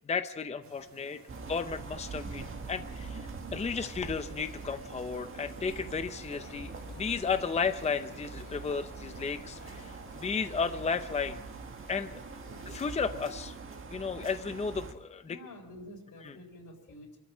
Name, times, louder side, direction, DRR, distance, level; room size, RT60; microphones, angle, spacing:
voice 1, 0.1-1.2 1.5-11.4 11.9-12.2 12.7-13.6 13.9-15.4 16.2-16.3, left 5 dB, 20° left, 10 dB, 0.6 m, -34 dB
voice 2, 0.6-1.5 3.7-3.9 10.0-10.5 12.5-12.7 15.3-17.2, left 1 dB, 65° left, 1 dB, 4.0 m, -51 dB
sound 1, 0.6-13.6, right 4 dB, 50° right, 3.3 m, -57 dB
sound 2, 1.3-14.9, right 4 dB, 35° right, 1.8 m, -43 dB
sound 3, 4.8-10.3, left 4 dB, 80° left, 2.5 m, -54 dB
26.5 x 13.0 x 7.5 m, 0.95 s
wide cardioid pair, 165°, 36 cm